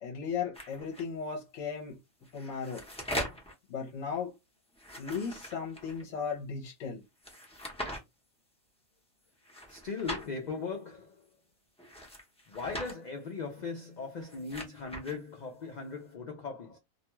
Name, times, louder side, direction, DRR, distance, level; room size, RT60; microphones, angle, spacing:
voice 1, 0.0-2.0 2.3-2.8 3.7-4.3 5.0-7.0, left 6 dB, 65° left, 1.0 m, -36 dB
sound 1, 0.5-1.0 2.2-3.5 4.7-6.0 7.2-8.0 9.4-10.3 11.8-12.9 14.1-15.2, equal, 5° left, 0.5 m, -40 dB
voice 2, 9.7-11.3 12.5-16.8, left 4 dB, 85° left, 0.4 m, -39 dB
2.5 x 2.2 x 2.9 m
omnidirectional pair, 1.4 m